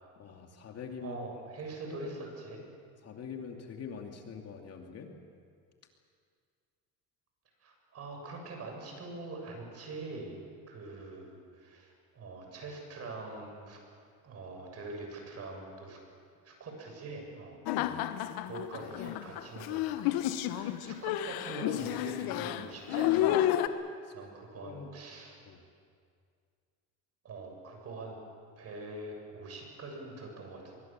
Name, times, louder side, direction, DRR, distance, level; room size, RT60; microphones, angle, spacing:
voice 1, 0.2-1.2 1.9-2.0 3.0-5.1 17.6-18.0 24.0-24.3 24.6-24.9 25.4-25.6, left 6 dB, 40° left, 3 dB, 2.8 m, -44 dB
voice 2, 1.0-2.6 7.6-13.8 14.2-16.0 16.4-17.6 18.4-23.4 24.1-25.4 27.2-28.2 28.6-30.8, right 3 dB, 40° right, 2 dB, 7.7 m, -44 dB
sound 1, 17.7-23.7, left 13 dB, 70° left, 1.3 m, -31 dB
25.0 x 23.0 x 7.6 m, 2.2 s
cardioid pair, 120°, 37 cm